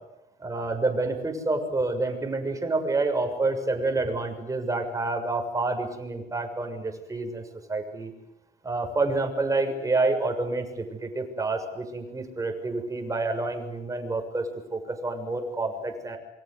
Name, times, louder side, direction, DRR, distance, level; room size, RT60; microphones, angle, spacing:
voice 1, 0.4-7.4 7.7-8.1 8.6-16.2, right 3 dB, 20° right, 5 dB, 6.7 m, -28 dB
28.0 x 25.0 x 8.1 m, 0.90 s
cardioid pair, 110°, 17 cm